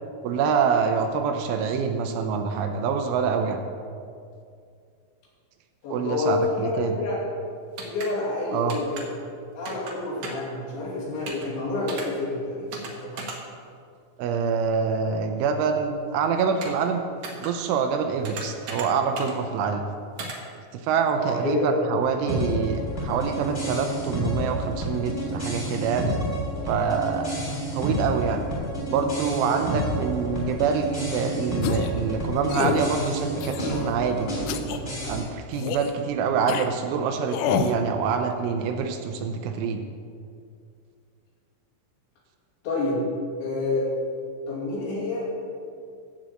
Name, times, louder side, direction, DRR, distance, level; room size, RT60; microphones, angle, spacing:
voice 1, 0.2-3.6 5.9-7.0 8.5-8.8 14.2-17.0 17.4-19.8 20.7-26.1 26.7-27.4 27.7-28.4 28.9-34.3 35.0-39.8, right 6 dB, 85° right, 5 dB, 2.9 m, -26 dB
voice 2, 5.8-7.2 7.8-9.1 9.5-13.2 21.2-21.7 42.6-43.0 43.4-43.9 44.5-45.3, left 3 dB, 65° left, -6 dB, 4.9 m, -28 dB
sound 1, 7.8-8.1 8.7-9.0 9.7-9.9 10.2-10.5 11.3-11.5 11.9-12.1 12.7-12.9 13.2-13.4 16.6-16.9 17.2-17.5 18.3-18.9 19.2-19.3 20.2-20.4, right 3 dB, 70° right, 2.1 m, -35 dB
sound 2, 22.3-35.2, equal, 15° left, 2.9 m, -30 dB
sound 3, 31.6-32.0 32.5-32.9 33.4-33.9 34.5-34.8 35.5-35.9 36.5-36.7 37.3-37.8, left 8 dB, 80° left, 2.8 m, -27 dB
14.5 x 5.1 x 7.6 m, 2.3 s
omnidirectional pair, 5.8 m